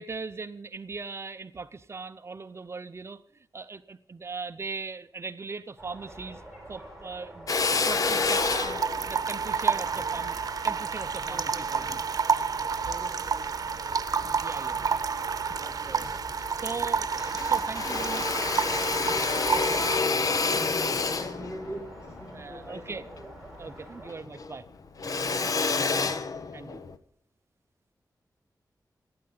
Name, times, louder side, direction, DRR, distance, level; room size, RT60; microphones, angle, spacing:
voice 1, 0.0-6.4 6.7-8.8 9.1-10.4 10.6-12.0 14.4-14.8 15.6-16.1 16.6-19.9 20.3-20.9 22.3-23.0 23.6-24.6 25.0-25.2 26.5-26.8, right 4 dB, 40° right, 11 dB, 0.6 m, -40 dB
sound 1, 5.8-24.2, right 1 dB, ahead, 6.2 m, -48 dB
Drill, 7.5-12.0 12.6-13.7 14.2-15.1 15.5-15.6 15.9-16.9 17.1-23.8 24.1-27.0, left 4 dB, 55° left, 1.0 m, -29 dB
sound 2, 8.3-20.0, right 6 dB, 60° right, 0.9 m, -30 dB
voice 2, 9.7-10.3 11.2-14.9 15.5-16.3 17.1-17.2 19.6-20.1 20.5-23.3 24.0-24.3 25.3-26.2, equal, 40° left, 4 dB, 3.0 m, -45 dB
27.5 x 9.6 x 3.8 m, 0.65 s
wide cardioid pair, 150°, 7 cm